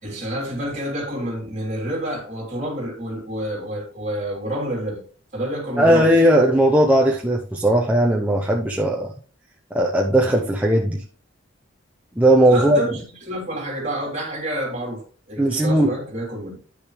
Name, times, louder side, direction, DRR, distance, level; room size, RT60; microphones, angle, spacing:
voice 1, 0.0-5.0 5.3-6.1 12.5-16.6, right 1 dB, 35° right, 3.3 m, -28 dB
voice 2, 5.8-9.1 9.7-11.0 12.2-12.8 15.4-15.9, right 1 dB, 5° right, 0.8 m, -17 dB
10.5 x 6.5 x 3.3 m
head